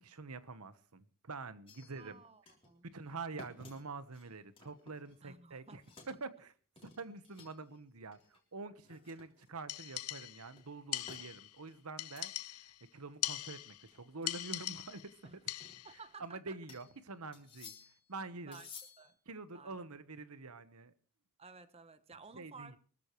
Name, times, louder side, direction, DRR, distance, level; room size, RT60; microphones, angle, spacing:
voice 1, 0.0-2.2 2.8-5.8 6.1-6.5 6.8-12.6 12.9-15.4 16.2-17.7 18.1-18.6 19.3-20.9 22.3-22.8, right 3 dB, 85° right, 1.2 m, -46 dB
sound 1, 1.7-2.2 2.5-2.7 3.0-5.4 5.7-6.2 6.8-7.8 8.1-8.4 8.8-9.7 10.6-11.3 11.7-12.3 12.7-12.8 13.1-13.2 13.9-14.3 15.2-16.3 16.7-17.0 17.3-18.1 18.5-19.1, left 4 dB, 25° left, 3.4 m, -56 dB
voice 2, 2.0-2.9 5.2-5.8 15.2-15.4 15.8-16.6 18.4-18.7 19.0-19.2 19.5-19.8 21.4-22.8, right 4 dB, 25° right, 1.0 m, -54 dB
sound 2, 9.7-10.5 10.9-11.6 12.0-12.8 13.2-13.9 14.3-15.1 15.5-16.0, left 16 dB, 85° left, 0.6 m, -41 dB
24.0 x 13.5 x 3.1 m
head